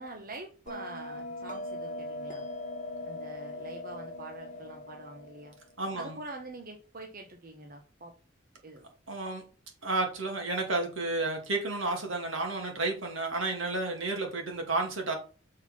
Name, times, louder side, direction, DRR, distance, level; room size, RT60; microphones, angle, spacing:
voice 1, 0.0-2.4 3.0-5.6 5.9-8.1 8.6-8.9, right 2 dB, 45° right, 3 dB, 1.1 m, -45 dB
Bell, 0.7-5.7, left 2 dB, 40° left, 1.4 m, -40 dB
voice 2, 5.8-6.2 9.1-9.4 9.8-15.1, right 2 dB, 80° right, 2 dB, 2.7 m, -31 dB
6.5 x 4.6 x 5.9 m, 0.36 s
head